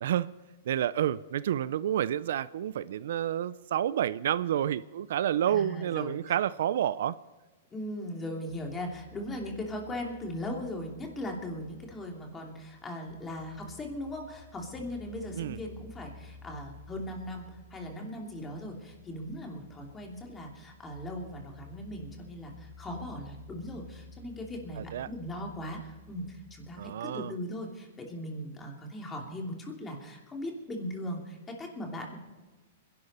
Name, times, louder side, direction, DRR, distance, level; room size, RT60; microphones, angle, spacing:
voice 1, 0.7-7.2 15.3-15.6 24.8-25.1 26.8-27.3, right 10 dB, 70° right, 18 dB, 0.4 m, -29 dB
voice 2, 5.5-6.2 7.7-32.2, left 1 dB, 15° left, 1 dB, 2.9 m, -39 dB
sound 1, 8.5-26.9, left 4 dB, 55° left, 2.2 m, -53 dB
24.5 x 11.5 x 4.3 m, 1.2 s
hypercardioid pair, 150°, 0 cm